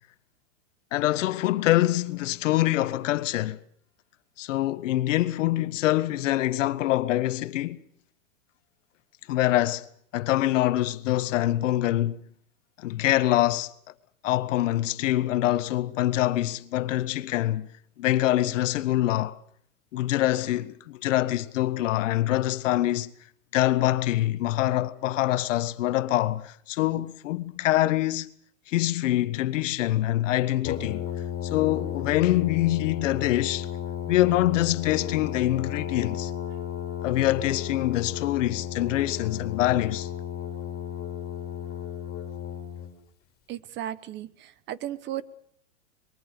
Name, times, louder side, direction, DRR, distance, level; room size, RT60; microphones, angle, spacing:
voice 1, 0.9-3.6 4.4-7.8 9.3-9.8 10.1-12.2 12.8-13.7 14.2-17.7 18.0-19.4 19.9-23.1 23.5-28.3 28.7-31.1 31.4-33.7 34.1-36.3 37.0-40.1, left 15 dB, 65° left, 1.4 m, -25 dB
Brass instrument, 30.6-42.9, left 9 dB, 25° left, 5.4 m, -34 dB
voice 2, 43.5-45.2, right 12 dB, 25° right, 1.1 m, -35 dB
23.5 x 22.0 x 6.7 m
supercardioid pair, 145°, 40 cm